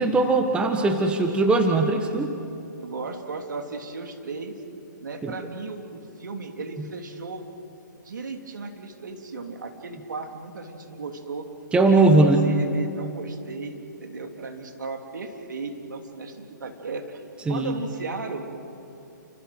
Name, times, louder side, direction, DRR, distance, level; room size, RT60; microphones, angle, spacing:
voice 1, 0.0-2.3 5.2-5.3 11.7-12.5 17.5-17.8, right 3 dB, 10° right, 5 dB, 1.5 m, -20 dB
voice 2, 2.8-4.6 5.0-7.4 8.0-11.5 11.8-17.2 17.5-18.4, right 4 dB, 70° right, 4 dB, 3.2 m, -35 dB
29.5 x 27.0 x 6.2 m, 2.8 s
figure-of-eight pair, 130°, 10 cm